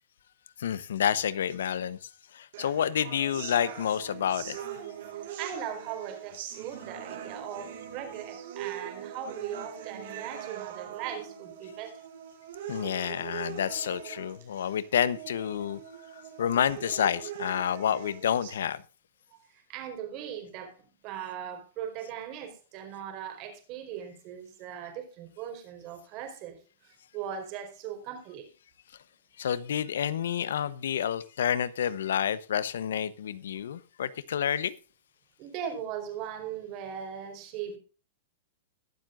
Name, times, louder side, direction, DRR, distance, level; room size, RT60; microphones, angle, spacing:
voice 1, 0.6-4.6 12.7-15.8 16.2-18.8 29.4-34.7, left 9 dB, 85° left, 18 dB, 0.9 m, -29 dB
sound 1, 2.5-18.5, right 9 dB, 70° right, 4.4 m, -42 dB
voice 2, 5.2-12.0 19.3-19.4 19.7-20.8 21.0-26.6 27.1-28.5 35.4-37.8, right 9 dB, 40° right, 6 dB, 4.5 m, -39 dB
21.0 x 7.7 x 2.5 m, 0.34 s
hypercardioid pair, 135°, 0 cm